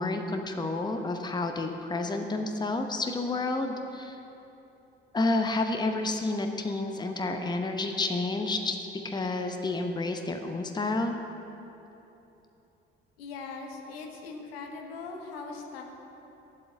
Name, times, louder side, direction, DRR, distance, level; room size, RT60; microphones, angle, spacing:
voice 1, 0.0-4.2 5.1-11.2, left 2 dB, 15° left, 5 dB, 0.9 m, -30 dB
voice 2, 13.2-15.8, left 4 dB, 70° left, 2 dB, 1.2 m, -40 dB
7.9 x 7.9 x 8.7 m, 3.0 s
figure-of-eight pair, 50°, 31 cm